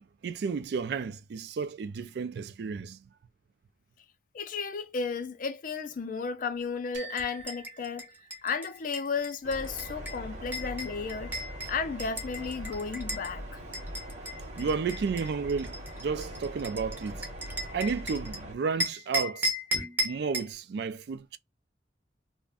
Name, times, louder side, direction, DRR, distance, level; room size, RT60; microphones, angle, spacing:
voice 1, 0.0-3.0 14.6-17.2 17.7-19.5 20.0-21.4, right 5 dB, 65° right, 0.3 m, -32 dB
voice 2, 4.3-8.1 8.4-11.3 11.7-13.6, left 5 dB, 50° left, 0.4 m, -33 dB
sound 1, 6.9-8.9, right 4 dB, 80° right, 0.9 m, -47 dB
sound 2, 7.1-13.3 13.7-18.4 18.8-20.5, equal, 10° right, 0.6 m, -36 dB
sound 3, 9.4-18.5, equal, 40° right, 0.8 m, -41 dB
2.4 x 2.1 x 3.5 m
head